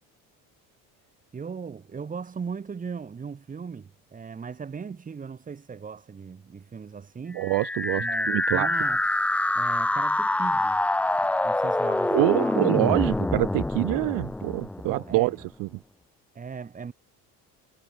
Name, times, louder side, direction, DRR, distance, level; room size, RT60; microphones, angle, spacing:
voice 1, 1.3-7.5 8.0-9.0 9.5-10.8 11.2-12.6 14.8-15.3 16.3-16.9, right 6 dB, 25° right, 3.2 m, -38 dB
voice 2, 7.3-8.7 12.1-15.7, right 22 dB, 70° right, 0.9 m, -25 dB
sound 1, 7.4-15.3, left 2 dB, 5° left, 0.3 m, -26 dB
cardioid pair, 145°, 35 cm